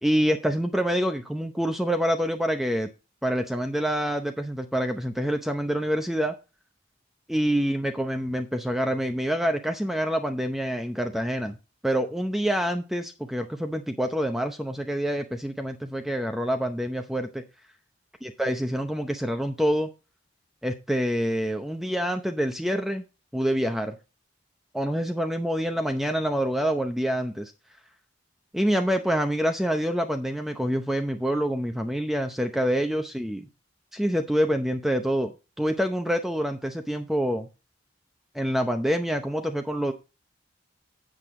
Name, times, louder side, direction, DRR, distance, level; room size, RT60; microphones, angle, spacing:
voice 1, 0.0-2.9 3.2-6.3 7.3-11.6 11.8-17.4 18.2-19.9 20.6-23.0 23.3-24.0 24.7-27.5 28.5-33.5 33.9-35.3 35.6-37.5 38.3-39.9, equal, ahead, 5 dB, 0.7 m, -26 dB
8.2 x 7.5 x 3.7 m, 0.29 s
head